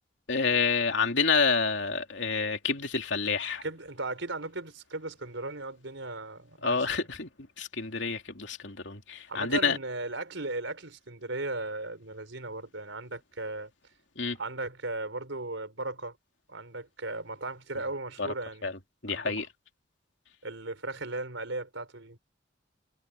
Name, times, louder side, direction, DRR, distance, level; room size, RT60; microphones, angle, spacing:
voice 1, 0.3-3.6 6.6-7.3 7.6-9.8 14.2-14.4 18.2-18.3 18.6-18.7 19.0-19.5, left 5 dB, 75° left, 2.7 m, -28 dB
voice 2, 3.6-7.0 9.3-13.7 14.4-16.2 16.5-18.7 19.1-19.3 20.4-22.2, right 2 dB, 80° right, 4.3 m, -37 dB
head